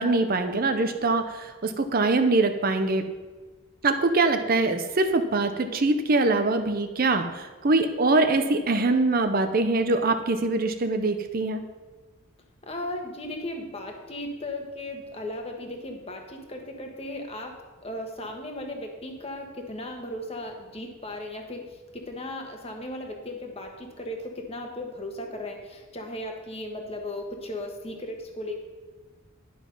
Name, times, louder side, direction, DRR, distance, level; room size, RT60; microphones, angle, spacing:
voice 1, 0.0-3.1 3.8-11.6, right 3 dB, 40° right, 8 dB, 0.7 m, -23 dB
voice 2, 12.6-28.6, left 1 dB, 25° left, 2 dB, 1.3 m, -36 dB
11.5 x 6.1 x 5.4 m, 1.3 s
head